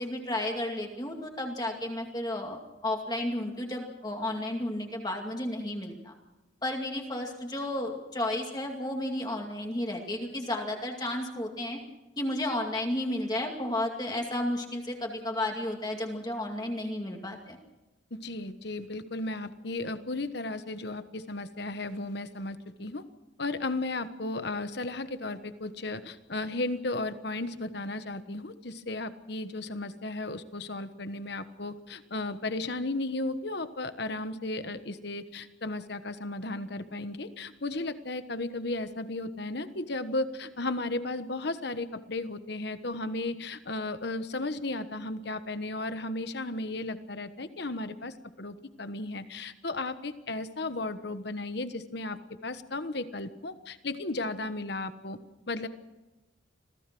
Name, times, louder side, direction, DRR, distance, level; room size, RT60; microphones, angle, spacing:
voice 1, 0.0-6.1 6.6-11.8 12.2-17.6, left 1 dB, 20° left, 1 dB, 2.4 m, -32 dB
voice 2, 18.1-23.0 23.4-55.2 55.5-55.7, left 2 dB, 55° left, 11 dB, 1.3 m, -35 dB
26.5 x 16.5 x 6.2 m, 1.1 s
head